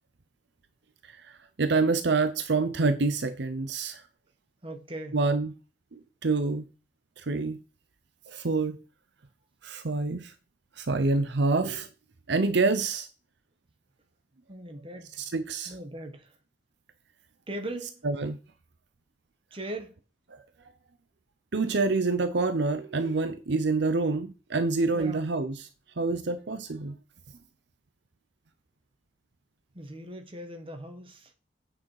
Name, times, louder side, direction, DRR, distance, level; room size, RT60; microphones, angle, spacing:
voice 1, 1.1-4.0 5.1-5.5 6.2-6.6 7.2-7.6 8.3-8.8 9.6-10.3 10.8-11.9 12.3-13.1 15.2-15.7 18.0-18.4 21.5-25.6 26.0-27.0, right 3 dB, 65° right, 0.8 m, -27 dB
voice 2, 4.6-5.2 14.5-15.2 15.7-16.4 17.5-18.0 19.5-20.0 24.9-25.2 29.7-31.3, right 1 dB, 30° right, 1.6 m, -39 dB
9.0 x 6.1 x 4.8 m
head